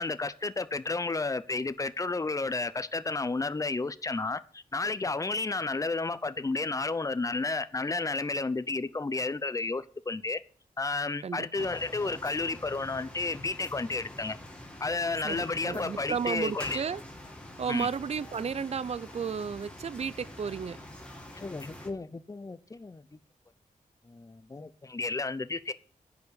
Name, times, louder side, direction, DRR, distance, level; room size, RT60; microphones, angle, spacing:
voice 1, 0.0-10.4 10.8-14.4 14.8-16.8 17.7-17.9 21.3-23.0 24.1-25.7, left 3 dB, 25° left, 0.7 m, -32 dB
voice 2, 11.2-11.7 15.2-17.0 17.6-20.8, right 6 dB, 50° right, 0.5 m, -33 dB
sound 1, 11.5-21.9, left 1 dB, 10° left, 2.6 m, -46 dB
10.5 x 7.1 x 8.2 m
wide cardioid pair, 145°, 14 cm